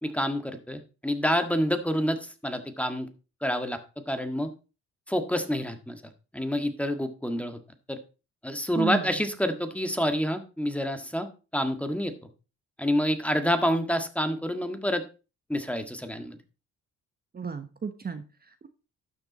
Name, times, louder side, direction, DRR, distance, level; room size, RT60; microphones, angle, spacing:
voice 1, 0.0-3.1 3.4-4.5 5.1-6.0 6.3-7.6 7.9-8.0 8.4-11.3 11.5-12.1 12.8-15.0 15.5-16.4, equal, 5° left, 7 dB, 1.7 m, -28 dB
voice 2, 8.7-9.1 17.3-18.7, right 5 dB, 30° right, 8 dB, 1.1 m, -33 dB
12.0 x 6.7 x 4.1 m, 0.32 s
cardioid pair, 90°, 30 cm